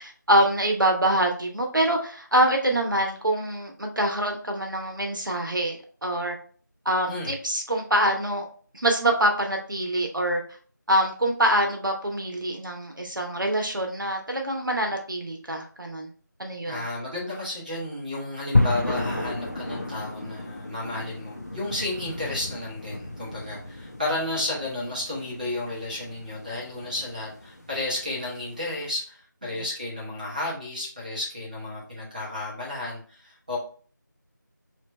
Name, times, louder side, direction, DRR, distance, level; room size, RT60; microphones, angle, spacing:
voice 1, 0.0-6.4 6.8-8.4 8.7-10.4 10.9-16.1 16.4-16.8 29.5-29.6, right 1 dB, 85° right, 2 dB, 0.9 m, -25 dB
voice 2, 16.6-33.6, left 2 dB, 25° right, -5 dB, 1.2 m, -32 dB
sound 1, 18.5-28.8, left 2 dB, 50° left, 0.7 m, -32 dB
3.2 x 2.9 x 3.1 m, 0.43 s
figure-of-eight pair, 175°, 11 cm